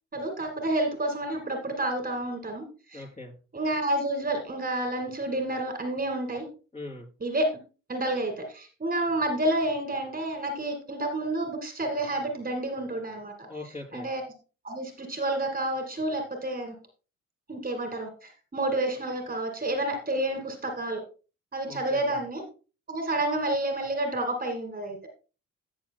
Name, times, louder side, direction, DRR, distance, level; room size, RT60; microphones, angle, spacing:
voice 1, 0.1-2.6 2.9-3.0 3.5-6.4 7.2-7.4 7.9-13.3 13.9-14.2 14.6-16.7 17.5-21.0 21.5-22.4 22.9-25.0, right 1 dB, 30° right, 5 dB, 2.0 m, -29 dB
voice 2, 2.9-3.3 6.7-7.1 13.4-14.1 21.6-22.2, left 2 dB, 20° left, 1 dB, 3.2 m, -41 dB
14.5 x 6.6 x 2.2 m, 0.34 s
cardioid pair, 90°, 30 cm